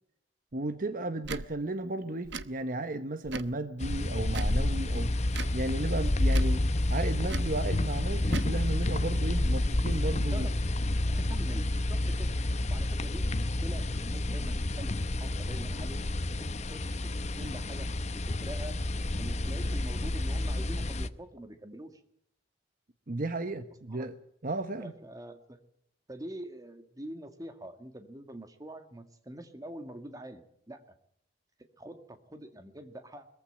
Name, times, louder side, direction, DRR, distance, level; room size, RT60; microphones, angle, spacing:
voice 1, 0.5-5.1 5.5-10.5 23.1-24.1 24.4-24.9, right 2 dB, 50° right, 11 dB, 1.0 m, -34 dB
Tick / Tick-tock, 1.2-1.5 2.2-2.5 3.2-3.6 4.3-4.6 5.3-5.6 6.3-6.6 7.3-7.5 8.3-8.5, right 4 dB, 70° right, 0.9 m, -38 dB
sound 1, 3.8-21.1, left 1 dB, 40° left, 0.8 m, -29 dB
voice 2, 11.1-12.4 12.7-16.0 16.7-17.1 17.4-18.8 19.2-22.0 23.9-24.1 24.8-25.6 26.1-30.8 31.8-33.3, right 1 dB, 20° right, 8 dB, 1.8 m, -45 dB
21.5 x 15.0 x 8.8 m, 0.74 s
head